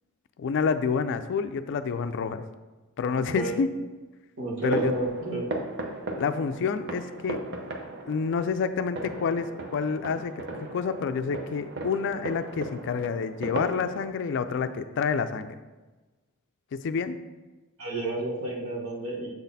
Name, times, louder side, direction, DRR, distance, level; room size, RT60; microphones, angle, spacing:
voice 1, 0.4-2.4 3.0-3.7 4.6-4.9 6.2-7.4 8.1-9.5 9.7-10.3 10.6-15.6 16.8-17.2, left 5 dB, 55° left, 10 dB, 0.4 m, -28 dB
voice 2, 3.1-3.5 4.4-5.5 17.8-19.3, right 1 dB, 70° right, -3 dB, 1.5 m, -30 dB
sound 1, 4.6-14.1, right 2 dB, 50° right, 0.7 m, -37 dB
7.0 x 4.1 x 4.1 m, 1.2 s
head